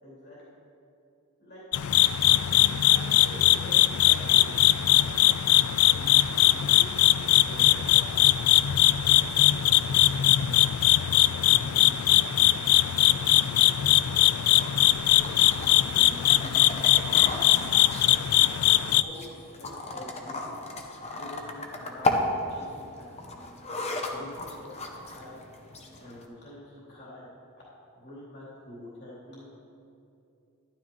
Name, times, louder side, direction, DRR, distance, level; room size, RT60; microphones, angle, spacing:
voice 1, 0.0-0.5 1.4-1.6 2.3-2.6 2.9-4.5 5.9-6.1 6.5-7.1 7.4-8.6 9.8-10.7 11.5-12.2 13.0-13.9 15.1-16.2 18.4-20.6 21.1-23.5 24.1-25.3 25.7-27.3 27.9-29.5, left 1 dB, 50° left, -7 dB, 2.8 m, -47 dB
sound 1, 1.7-19.0, left 14 dB, 75° left, 0.3 m, -21 dB
sound 2, 14.6-26.2, left 2 dB, 30° left, 0.9 m, -35 dB
12.0 x 12.0 x 3.0 m, 2.7 s
head